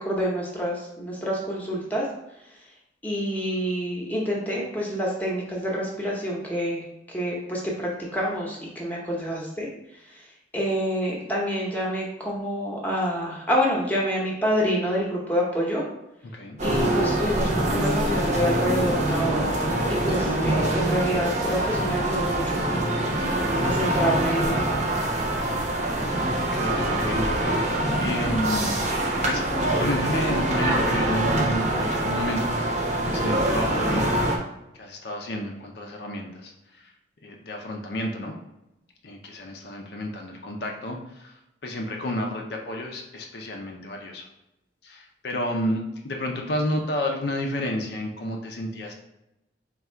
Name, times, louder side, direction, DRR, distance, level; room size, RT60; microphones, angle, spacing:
voice 1, 0.0-2.1 3.0-9.7 10.1-10.2 10.5-15.8 16.6-19.5 19.9-24.7, equal, 10° left, -3 dB, 0.7 m, -27 dB
sound 1, 16.6-34.4, right 1 dB, 40° right, 0.7 m, -24 dB
voice 2, 26.4-27.3 28.0-28.8 29.2-29.4 29.7-32.7 33.0-34.2 34.7-36.9 37.2-38.3 39.0-44.3 44.8-48.9, left 1 dB, 60° left, 1 dB, 0.5 m, -31 dB
3.6 x 2.3 x 4.3 m, 0.89 s
head